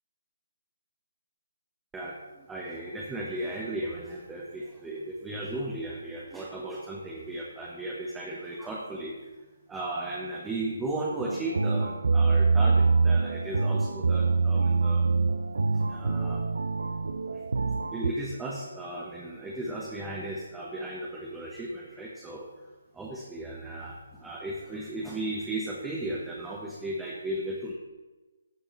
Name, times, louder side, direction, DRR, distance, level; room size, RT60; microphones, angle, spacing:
voice 1, 1.9-9.3 9.7-15.1 15.7-16.5 17.9-22.5 22.9-27.7, right 1 dB, 10° right, -4 dB, 1.0 m, -35 dB
sound 1, 11.2-18.1, right 4 dB, 65° right, 0.5 m, -25 dB
15.5 x 5.3 x 3.1 m, 1.2 s
figure-of-eight pair, 145°, 0 cm